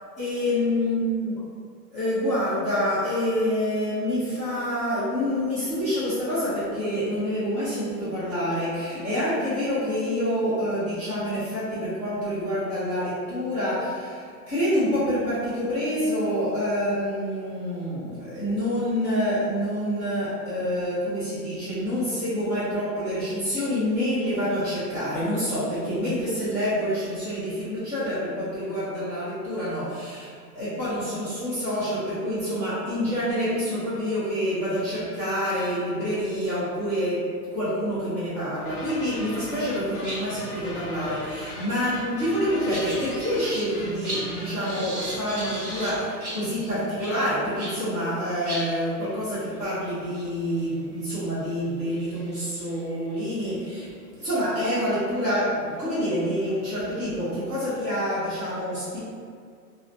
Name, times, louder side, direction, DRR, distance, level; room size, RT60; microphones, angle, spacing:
voice 1, 0.2-1.4 1.9-53.9 54.2-59.0, equal, 15° left, -15 dB, 0.7 m, -27 dB
sound 1, 38.7-46.1, left 1 dB, 65° left, 0.8 m, -40 dB
sound 2, 38.9-39.4 39.7-47.9 48.2-48.3 48.5-54.3 54.9-55.1 56.0-56.1 56.7-58.4, right 1 dB, 20° right, 0.7 m, -39 dB
3.0 x 2.0 x 2.7 m, 2.1 s
hypercardioid pair, 145°, 48 cm